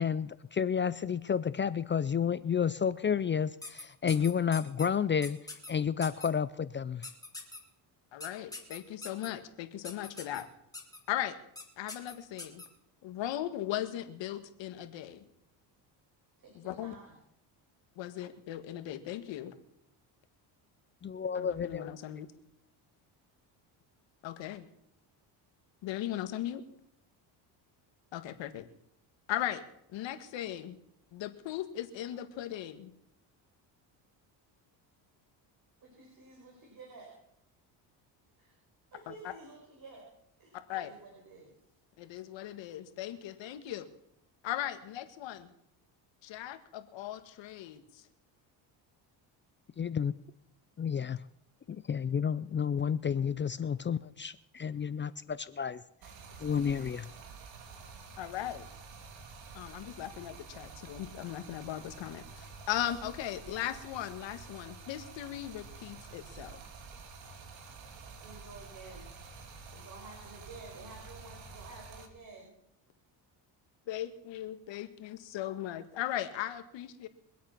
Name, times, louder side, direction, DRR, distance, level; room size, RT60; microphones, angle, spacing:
voice 1, 0.0-5.4 5.7-7.1 21.0-21.9 49.8-50.1 50.8-51.2 51.7-55.8 56.4-57.1, left 7 dB, 25° left, 16 dB, 0.5 m, -31 dB
sound 1, 3.6-4.9 5.2-5.7 6.0-6.3 7.0-7.6 8.2-9.3 9.8-10.4 10.7-11.0 11.6-11.7 11.9-12.7, left 2 dB, 10° left, 2.8 m, -43 dB
voice 2, 8.1-10.5 11.1-11.4 11.8-12.6 13.0-15.2 16.5-16.9 17.9-19.5 21.3-22.3 24.2-24.7 25.8-26.6 28.1-28.6 29.3-29.6 29.9-30.8 31.1-32.9 39.1-39.2 40.7-40.9 42.0-43.9 44.4-45.5 46.2-48.1 58.2-58.7 59.5-66.6 73.9-77.1, left 12 dB, 75° left, 9 dB, 1.8 m, -38 dB
voice 3, 16.4-17.2 35.8-37.1 38.4-38.5 38.9-40.0 40.4-41.6 68.2-69.1 69.7-72.5, right 3 dB, 45° right, -1 dB, 5.2 m, -51 dB
Stream, 56.0-72.1, right 4 dB, 80° right, 2.7 m, -49 dB
24.0 x 8.4 x 5.9 m, 0.76 s
cardioid pair, 110°, 45 cm